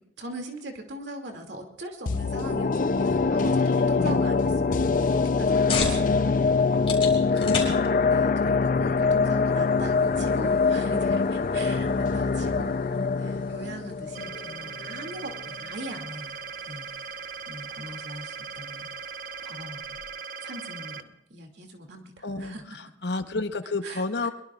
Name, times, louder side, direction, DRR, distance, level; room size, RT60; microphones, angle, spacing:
voice 1, 0.2-6.4 6.9-7.5 8.1-12.7 13.2-16.4 16.7-16.9 17.5-18.9 19.4-20.0 20.4-21.0 21.3-22.6 23.8-24.0, right 1 dB, 75° right, 3 dB, 2.5 m, -41 dB
sound 1, 2.1-15.1 15.5-15.6, left 4 dB, 50° left, 0.5 m, -24 dB
voice 2, 3.6-4.2 7.4-8.3 12.9-13.2 22.2-22.5 23.0-24.3, left 3 dB, 65° left, 9 dB, 1.0 m, -32 dB
sound 2, 5.1-20.2, left 5 dB, 35° left, 4.0 m, -40 dB
sound 3, 14.1-21.0, right 6 dB, 50° right, 1.0 m, -39 dB
23.5 x 22.5 x 2.5 m, 0.85 s
head